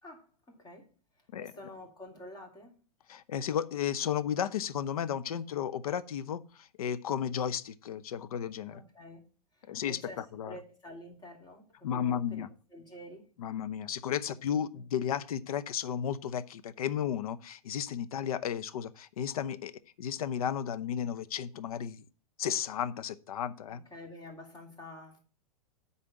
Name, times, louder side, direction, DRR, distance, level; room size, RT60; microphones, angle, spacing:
voice 1, 0.0-2.8 8.7-9.2 9.5-13.3 23.7-25.2, left 1 dB, 20° left, 3.2 m, -49 dB
voice 2, 3.1-8.8 9.7-10.0 10.4-10.5 11.8-12.5 13.4-19.7 20.0-22.0 22.4-23.8, left 9 dB, 70° left, 0.8 m, -33 dB
9.7 x 4.2 x 7.4 m
hypercardioid pair, 105°, 20 cm